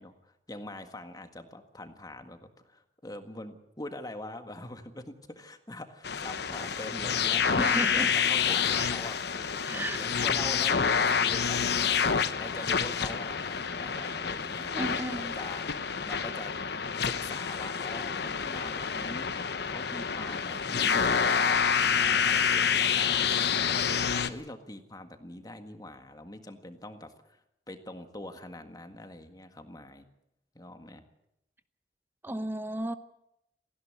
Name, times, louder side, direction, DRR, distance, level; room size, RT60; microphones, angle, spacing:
voice 1, 0.0-12.0 12.4-14.9 15.2-15.6 16.1-16.5 17.0-19.3 19.6-27.4 27.7-30.1 30.6-31.0, left 1 dB, 20° left, 7 dB, 1.8 m, -44 dB
sound 1, 6.0-24.3, left 6 dB, 65° left, 1.0 m, -28 dB
voice 2, 7.6-8.1 8.5-8.9 9.6-10.3 14.7-15.3 32.2-32.9, right 1 dB, 10° right, 11 dB, 0.9 m, -34 dB
18.5 x 15.5 x 9.5 m, 0.83 s
head